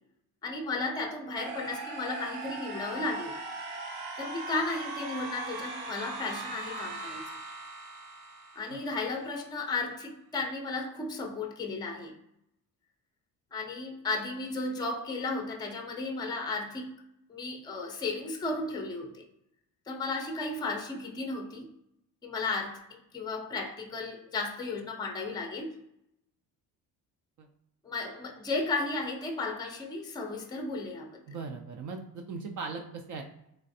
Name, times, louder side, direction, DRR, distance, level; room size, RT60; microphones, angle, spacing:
voice 1, 0.4-3.4 4.2-7.2 8.6-12.1 13.5-17.0 17.3-19.2 19.9-21.7 22.2-25.8 27.8-31.2, left 3 dB, 10° left, 2 dB, 0.5 m, -34 dB
sound 1, 1.3-9.3, right 2 dB, 90° right, 0.7 m, -40 dB
voice 2, 31.3-33.2, right 4 dB, 50° right, 3 dB, 0.5 m, -39 dB
3.2 x 2.4 x 2.6 m, 0.78 s
cardioid pair, 110°, 38 cm